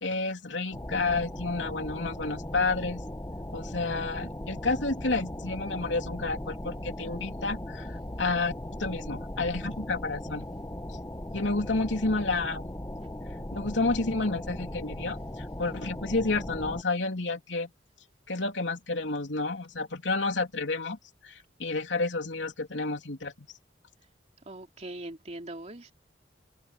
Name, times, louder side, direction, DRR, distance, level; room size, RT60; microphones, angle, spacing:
voice 1, 0.0-3.0 3.5-8.5 8.8-10.4 11.3-12.7 13.5-17.7 18.3-21.0 21.2-23.5, left 3 dB, 85° left, 3.2 m, -30 dB
sound 1, 0.7-16.8, left 1 dB, 15° left, 1.1 m, -38 dB
voice 2, 24.4-25.9, right 1 dB, 35° right, 2.8 m, -41 dB
head